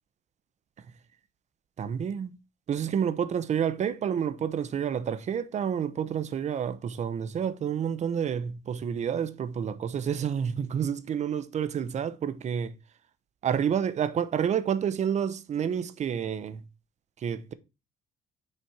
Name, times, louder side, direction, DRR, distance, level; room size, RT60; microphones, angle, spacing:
voice 1, 1.8-2.4 2.7-12.7 13.4-16.6 17.2-17.5, right 8 dB, 45° right, 0.8 m, -29 dB
6.6 x 4.2 x 4.8 m
cardioid pair, 110°, 17 cm